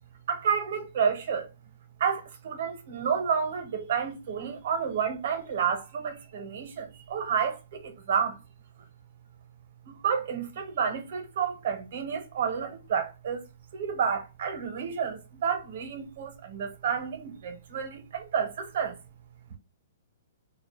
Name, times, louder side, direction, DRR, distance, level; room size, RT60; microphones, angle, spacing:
voice 1, 0.3-1.5 2.0-8.4 9.9-13.4 13.7-19.0, right 7 dB, 55° right, 0.6 m, -30 dB
2.1 x 2.0 x 2.8 m
hypercardioid pair, 160°, 0 cm